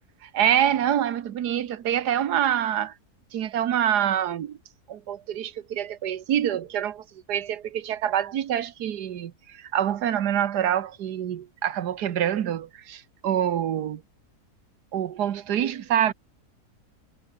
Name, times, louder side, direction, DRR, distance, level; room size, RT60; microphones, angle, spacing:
voice 1, 0.2-2.9 3.3-4.6 4.9-14.0 14.9-16.1, right 10 dB, 90° right, 1.6 m, -26 dB
omnidirectional pair, 1.7 m